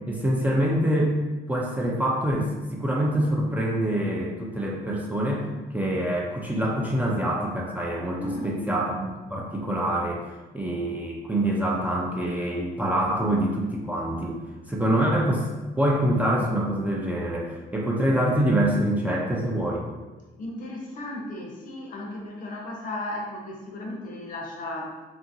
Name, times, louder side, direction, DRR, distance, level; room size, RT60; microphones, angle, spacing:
voice 1, 0.1-1.2 1.5-5.5 5.7-10.2 10.5-14.4 14.7-15.5 15.8-19.9, right 1 dB, 10° right, -3 dB, 0.4 m, -25 dB
voice 2, 8.1-8.7 20.4-25.0, left 1 dB, 50° left, -1 dB, 0.7 m, -35 dB
2.8 x 2.5 x 2.7 m, 1.2 s
cardioid pair, 110°, 17 cm